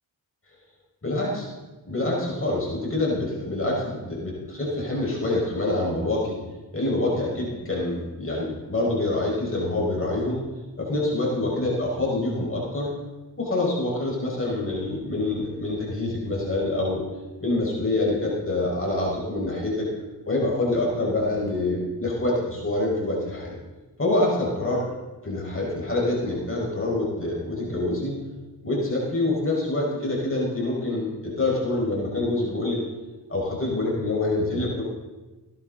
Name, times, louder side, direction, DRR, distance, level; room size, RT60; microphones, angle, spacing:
voice 1, 1.0-1.5 1.9-6.4 6.7-10.4 10.8-12.9 13.4-17.0 17.4-19.9 20.3-23.6 24.0-24.9 25.2-28.2 28.6-32.8 33.3-34.8, left 2 dB, 30° left, -4 dB, 5.4 m, -26 dB
18.0 x 11.0 x 3.9 m, 1.2 s
cardioid pair, 75°, 44 cm